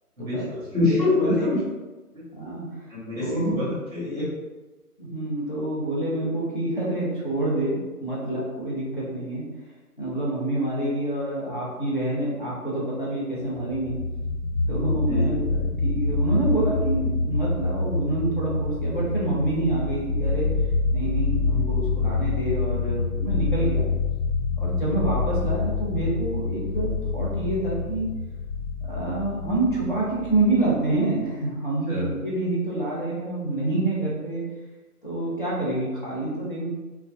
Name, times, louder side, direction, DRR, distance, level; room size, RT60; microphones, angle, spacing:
voice 1, 0.2-1.6 2.1-2.2 2.9-4.3 15.1-15.3 31.9-32.1, left 2 dB, 5° right, -12 dB, 1.1 m, -25 dB
voice 2, 0.8-1.6 2.3-2.7 3.1-3.6 5.0-9.4 10.0-14.0 14.7-15.6 15.8-20.5 20.9-23.8 24.6-28.1 28.9-34.4 35.0-36.7, right 2 dB, 35° left, -6 dB, 0.5 m, -27 dB
sound 1, 13.6-30.9, left 3 dB, 55° left, 1.0 m, -26 dB
2.3 x 2.1 x 2.5 m, 1.2 s
figure-of-eight pair, 150°, 47 cm